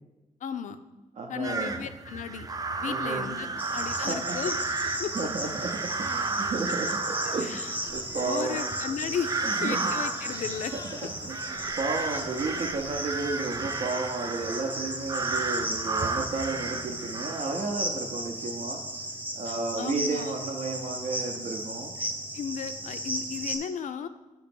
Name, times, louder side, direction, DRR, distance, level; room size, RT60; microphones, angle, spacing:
voice 1, 0.4-0.8 1.3-2.5 2.8-4.6 4.8-5.1 7.2-7.8 8.2-9.3 9.6-10.7 19.5-20.3 22.0-24.1, left 7 dB, 80° left, 10 dB, 0.4 m, -35 dB
voice 2, 1.2-1.8 2.8-3.3 4.0-4.4 5.1-8.6 9.4-9.8 10.7-18.8 19.4-21.9, right 3 dB, 65° right, 2 dB, 0.6 m, -33 dB
sound 1, 1.4-17.7, right 3 dB, 30° right, 0.3 m, -33 dB
Cricket, 3.6-23.6, right 1 dB, 15° right, 0.8 m, -36 dB
sound 2, 7.8-13.0, left 3 dB, 30° left, 0.5 m, -49 dB
7.8 x 2.9 x 5.2 m, 1.1 s
wide cardioid pair, 120°, 13 cm